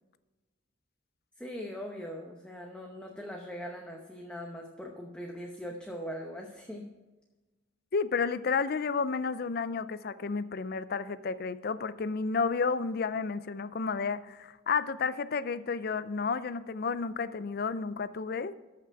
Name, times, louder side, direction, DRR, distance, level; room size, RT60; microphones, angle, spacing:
voice 1, 1.4-6.9, equal, 5° left, 0 dB, 0.9 m, -41 dB
voice 2, 7.9-18.5, left 5 dB, 50° left, 15 dB, 0.5 m, -31 dB
13.5 x 5.9 x 4.7 m, 1.2 s
head